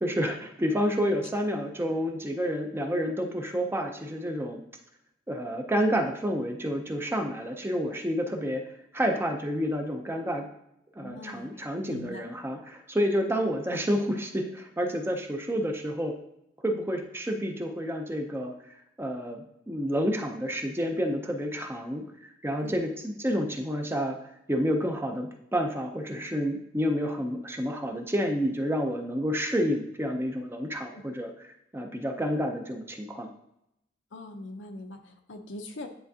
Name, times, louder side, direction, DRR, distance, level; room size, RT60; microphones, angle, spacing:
voice 1, 0.0-4.6 5.3-8.6 8.9-10.5 11.0-16.1 16.6-18.5 19.0-22.0 22.4-24.2 24.5-31.3 31.7-33.3, equal, 10° right, 3 dB, 0.6 m, -29 dB
voice 2, 11.0-11.6 11.9-12.2 22.6-22.8 30.9-31.0 34.1-35.9, left 2 dB, 75° left, 5 dB, 0.7 m, -41 dB
10.0 x 3.4 x 2.8 m, 0.78 s
head